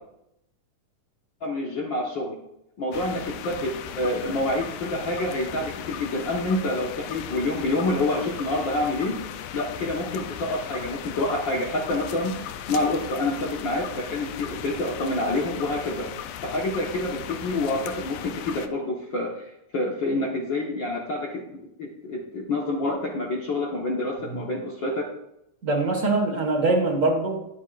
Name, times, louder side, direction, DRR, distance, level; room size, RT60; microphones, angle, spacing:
voice 1, 1.4-2.4 2.8-9.2 9.5-12.3 12.7-16.1 16.4-21.4 21.8-25.1, left 2 dB, 50° left, -2 dB, 1.6 m, -27 dB
sound 1, 2.9-18.7, left 10 dB, 85° left, 2.3 m, -37 dB
voice 2, 25.6-27.4, right 2 dB, 35° right, 1 dB, 1.3 m, -23 dB
19.0 x 7.4 x 2.5 m, 0.81 s
omnidirectional pair, 3.7 m